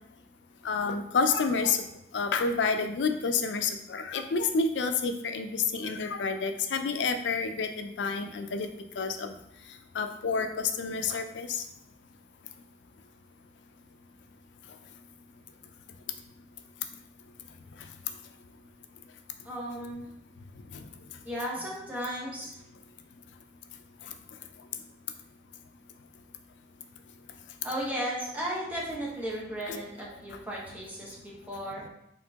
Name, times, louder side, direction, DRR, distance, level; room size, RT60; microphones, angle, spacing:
voice 1, 0.6-1.8 2.1-8.7 9.0-9.3 9.9-11.6 20.7-20.9 29.7-29.8, left 4 dB, 75° left, 7 dB, 0.4 m, -29 dB
voice 2, 19.4-20.0 21.2-22.5 27.6-31.8, equal, 10° right, -5 dB, 1.0 m, -35 dB
4.4 x 3.7 x 2.8 m, 0.78 s
head